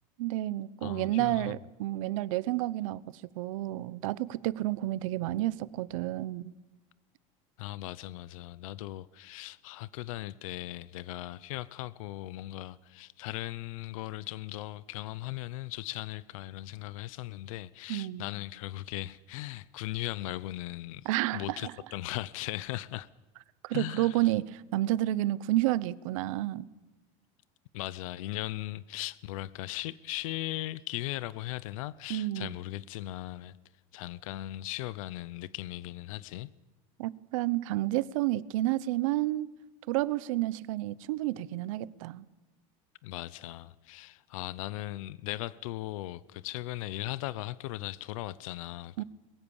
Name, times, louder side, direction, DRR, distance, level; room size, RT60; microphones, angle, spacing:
voice 1, 0.2-3.0 3.3-6.5 17.9-18.3 21.0-21.7 23.6-26.7 32.1-32.5 37.0-39.5 39.9-42.2 49.0-49.1, right 16 dB, 75° right, 0.9 m, -30 dB
voice 2, 0.8-1.5 7.6-23.1 23.7-24.3 27.7-33.6 33.9-36.5 43.0-49.0, left 16 dB, 75° left, 0.7 m, -38 dB
22.5 x 22.0 x 7.2 m
supercardioid pair, 170°, 17 cm